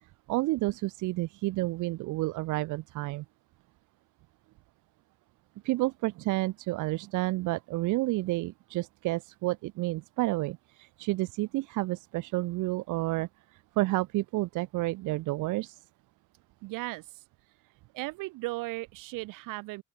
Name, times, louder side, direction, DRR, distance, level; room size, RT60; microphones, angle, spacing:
voice 1, 0.3-3.2 5.6-15.8, right 19 dB, 70° right, 1.7 m, -30 dB
voice 2, 16.6-17.2 17.9-19.8, right 22 dB, 85° right, 4.1 m, -36 dB
open air
cardioid pair, 165°, 32 cm